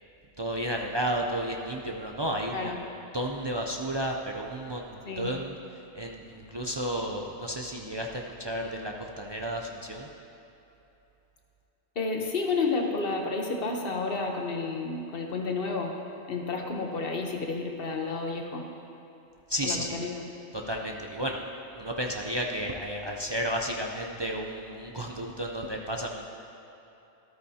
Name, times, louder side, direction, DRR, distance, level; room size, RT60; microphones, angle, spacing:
voice 1, 0.4-2.7 3.1-5.6 5.9-10.1 19.5-20.0 20.5-21.4 21.7-26.2, equal, 45° right, 0 dB, 0.3 m, -32 dB
voice 2, 12.0-15.9 16.3-18.7 19.6-20.2, left 3 dB, 50° left, 2 dB, 1.1 m, -31 dB
13.0 x 12.5 x 2.8 m, 3.0 s
omnidirectional pair, 1.3 m